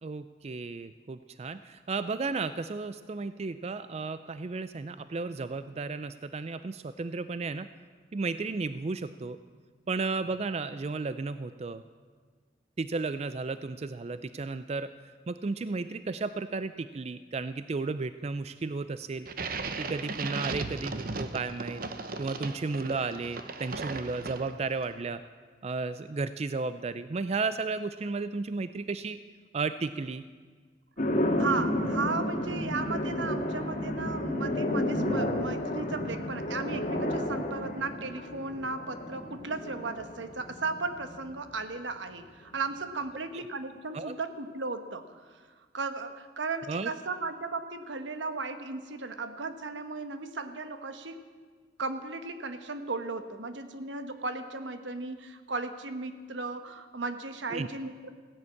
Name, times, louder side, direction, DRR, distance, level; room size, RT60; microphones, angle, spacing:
voice 1, 0.0-7.7 8.1-9.4 9.9-11.8 12.8-14.9 15.3-19.3 19.8-21.8 22.2-25.2 25.6-29.2 29.5-30.2 43.3-43.4 43.9-44.1 46.7-46.9 57.5-57.7, right 4 dB, 35° right, 12 dB, 0.4 m, -33 dB
sound 1, 19.2-24.8, right 3 dB, 50° right, 1.0 m, -36 dB
sound 2, 31.0-41.3, left 1 dB, 45° left, 1.8 m, -31 dB
voice 2, 31.4-45.4 45.7-51.2 51.8-58.1, right 3 dB, 85° right, 9 dB, 1.2 m, -35 dB
15.5 x 11.0 x 8.5 m, 1.5 s
head